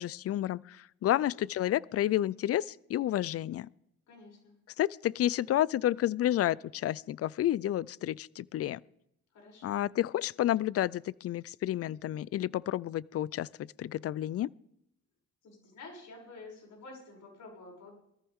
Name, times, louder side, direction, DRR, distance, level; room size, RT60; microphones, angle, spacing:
voice 1, 0.0-3.7 4.8-8.8 9.6-14.5, left 13 dB, 50° left, 23 dB, 0.5 m, -30 dB
voice 2, 4.1-4.5 9.3-9.8 15.4-17.9, left 3 dB, 70° left, -1 dB, 7.0 m, -50 dB
20.5 x 14.5 x 3.6 m, 0.78 s
cardioid pair, 90°, 30 cm